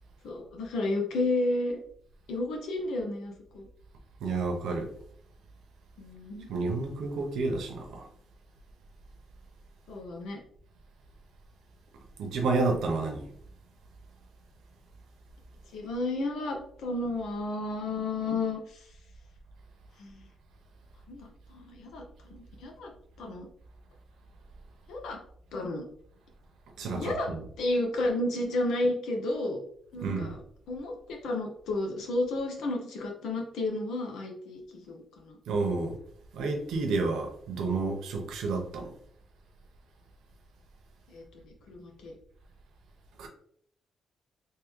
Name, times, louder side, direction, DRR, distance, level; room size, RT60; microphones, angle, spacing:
voice 1, 0.2-1.8 2.3-3.7 6.0-6.5 9.9-10.4 15.7-18.8 20.0-20.2 21.1-22.0 22.3-22.9 23.2-23.5 24.9-25.2 25.5-25.8 26.8-27.3 27.6-29.6 29.9-30.4 30.7-35.4 41.1-42.1, left 2 dB, 90° left, 0.9 m, -32 dB
voice 2, 4.2-4.9 6.5-8.1 12.2-13.3 26.8-27.4 30.0-30.3 35.5-36.0 36.3-38.9 43.2-43.3, right 3 dB, 90° right, 0.9 m, -30 dB
3.7 x 2.8 x 3.2 m
cardioid pair, 145°, 0 cm